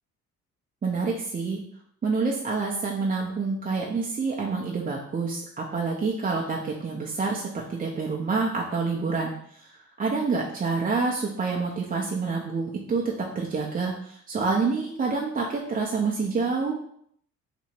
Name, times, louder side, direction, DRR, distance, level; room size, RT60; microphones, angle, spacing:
voice 1, 0.8-1.6 2.0-9.7 10.0-13.0 13.3-16.7, right 4 dB, 30° right, -2 dB, 0.6 m, -27 dB
3.0 x 2.6 x 4.3 m, 0.67 s
cardioid pair, 90°, 30 cm